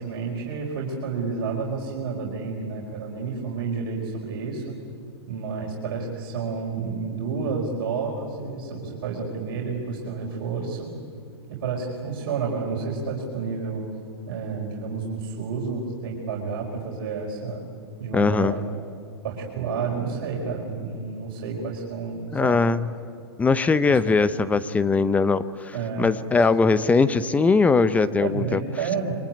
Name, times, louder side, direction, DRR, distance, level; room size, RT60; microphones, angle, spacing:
voice 1, 0.0-4.7 5.3-10.9 11.5-13.8 14.3-17.6 18.0-18.6 19.2-22.6 23.9-24.0 25.7-26.2 28.2-29.1, right 5 dB, 55° right, -2 dB, 5.2 m, -30 dB
voice 2, 18.1-18.6 22.3-22.9 23.4-28.6, left 4 dB, 10° left, 13 dB, 0.8 m, -21 dB
26.5 x 24.0 x 9.3 m, 2.5 s
hypercardioid pair, 130°, 14 cm